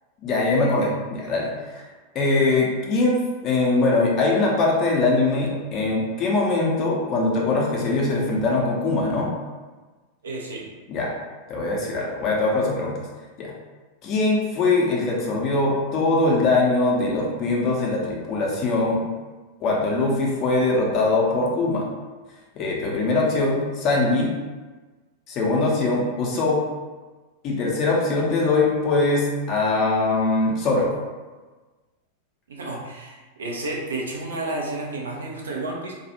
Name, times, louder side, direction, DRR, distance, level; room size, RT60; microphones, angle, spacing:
voice 1, 0.2-1.9 2.1-9.3 10.9-11.1 11.5-13.0 13.4-13.5 14.0-19.0 19.6-21.8 22.6-24.3 25.3-26.6 27.4-30.9, left 2 dB, 35° left, -2 dB, 0.6 m, -22 dB
voice 2, 10.2-10.7 32.5-35.9, right 2 dB, 65° right, -1 dB, 0.5 m, -31 dB
2.3 x 2.3 x 2.8 m, 1.3 s
figure-of-eight pair, 90°, 0 cm